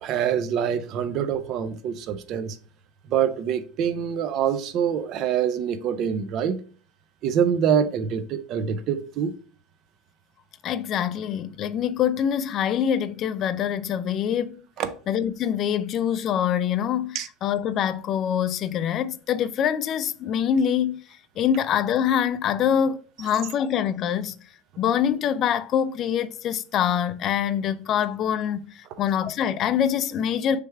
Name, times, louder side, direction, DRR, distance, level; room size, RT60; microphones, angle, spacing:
voice 1, 0.0-2.6 3.1-6.6 7.2-9.3 14.8-15.0 17.1-17.3, right 8 dB, 45° right, 0.4 m, -25 dB
voice 2, 10.6-14.6 15.1-21.0 21.4-24.4 24.8-30.6, left 9 dB, 35° left, 0.3 m, -25 dB
3.3 x 3.2 x 4.5 m
cardioid pair, 155°, 0 cm